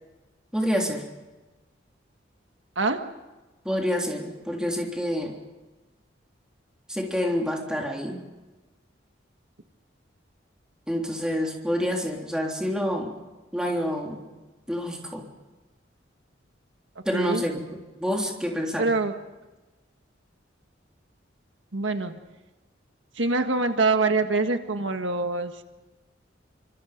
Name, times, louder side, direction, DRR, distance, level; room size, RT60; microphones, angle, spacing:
voice 1, 0.5-1.0 3.7-5.3 6.9-8.2 10.9-13.1 13.5-14.2 14.7-15.3 17.1-17.6 18.0-18.9, equal, 5° right, 0 dB, 3.5 m, -27 dB
voice 2, 17.1-17.4 18.8-19.1 21.7-22.2 23.1-25.5, right 3 dB, 80° right, 6 dB, 1.7 m, -24 dB
27.5 x 25.5 x 5.4 m, 1.2 s
head